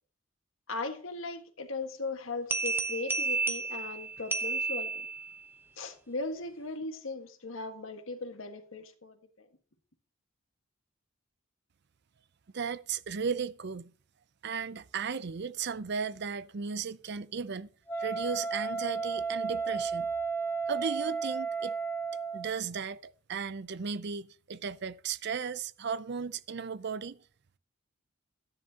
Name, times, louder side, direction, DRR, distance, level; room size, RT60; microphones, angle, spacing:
voice 1, 0.7-5.1 5.8-9.2, left 3 dB, 70° left, 1.7 m, -38 dB
sound 1, 2.5-5.4, right 4 dB, 10° right, 0.9 m, -32 dB
voice 2, 12.5-13.9 14.4-17.7 18.0-20.1 20.7-21.7 22.3-27.2, right 6 dB, 55° right, 0.6 m, -35 dB
Wind instrument woodwind instrument, 17.9-22.6, right 5 dB, 10° left, 1.1 m, -33 dB
13.0 x 10.5 x 2.9 m
head